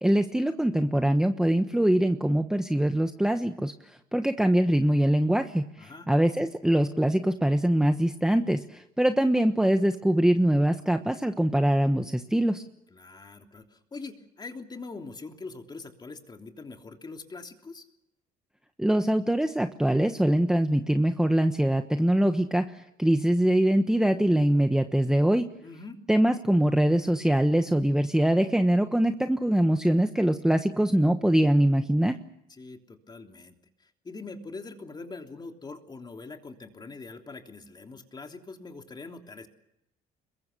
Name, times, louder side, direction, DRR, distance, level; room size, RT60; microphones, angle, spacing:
voice 1, 0.0-3.7 4.1-12.6 18.8-25.5 26.1-32.2, right 1 dB, 5° right, 7 dB, 1.2 m, -23 dB
voice 2, 5.8-6.1 12.9-17.9 25.6-26.0 32.5-33.5 34.0-39.5, left 3 dB, 25° left, 4 dB, 3.2 m, -43 dB
27.0 x 22.5 x 6.9 m, 0.82 s
cardioid pair, 110°, 17 cm